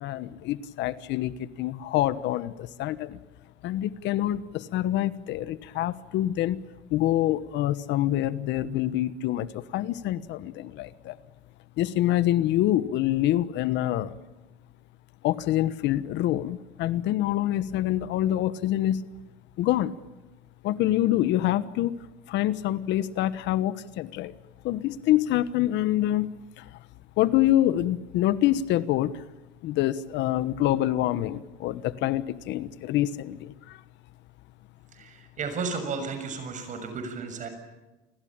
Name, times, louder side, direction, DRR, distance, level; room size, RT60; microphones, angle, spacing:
voice 1, 0.0-3.2 3.6-6.6 6.9-11.2 11.8-14.1 15.2-19.0 19.6-19.9 20.6-21.9 22.3-24.3 24.6-26.3 26.6-26.7 27.2-29.1 29.6-33.8, left 13 dB, 60° left, 16 dB, 1.2 m, -26 dB
voice 2, 34.9-37.5, right 4 dB, 35° right, 8 dB, 6.8 m, -33 dB
29.0 x 21.0 x 8.9 m, 1.1 s
cardioid pair, 140°, 21 cm